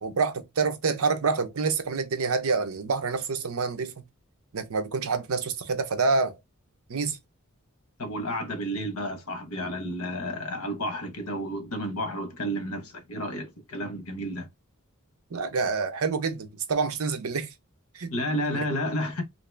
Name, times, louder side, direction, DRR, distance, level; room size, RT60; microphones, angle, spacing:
voice 1, 0.0-3.9 4.5-6.3 6.9-7.2 15.3-17.5 17.9-18.1, right 4 dB, 75° right, 0.6 m, -27 dB
voice 2, 8.0-14.5 18.1-19.2, equal, 80° left, 1.0 m, -31 dB
2.9 x 2.7 x 3.3 m
head